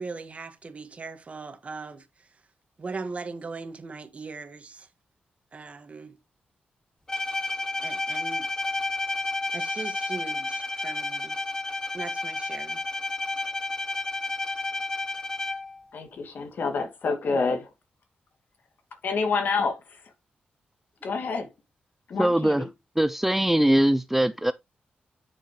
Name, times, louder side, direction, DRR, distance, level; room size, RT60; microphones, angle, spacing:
voice 1, 0.0-2.4 2.8-4.9 5.5-6.2 7.8-8.8 9.5-11.4 11.9-12.8, right 4 dB, 40° right, 1.7 m, -39 dB
Bowed string instrument, 7.1-15.8, left 2 dB, 20° left, 1.5 m, -31 dB
voice 2, 15.9-17.7 19.0-19.8 21.0-21.5 22.1-22.7, left 4 dB, 65° left, 2.5 m, -27 dB
voice 3, 22.2-22.6 23.0-24.5, right 1 dB, 5° right, 0.4 m, -21 dB
10.5 x 6.5 x 3.1 m
cardioid pair, 105°, 3 cm